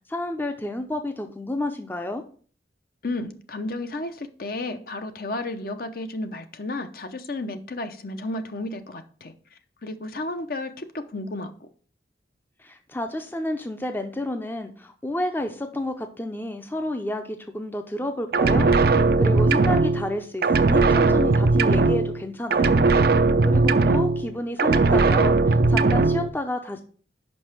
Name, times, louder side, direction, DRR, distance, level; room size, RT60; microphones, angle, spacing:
voice 1, 0.1-2.2 12.6-22.8 23.4-26.8, left 1 dB, 10° left, 0.5 m, -30 dB
voice 2, 3.0-11.7, left 2 dB, 55° left, 0.7 m, -33 dB
sound 1, 18.3-20.2 20.4-22.3 22.5-24.3 24.6-26.3, right 3 dB, 55° right, 0.5 m, -19 dB
5.5 x 5.4 x 5.9 m
head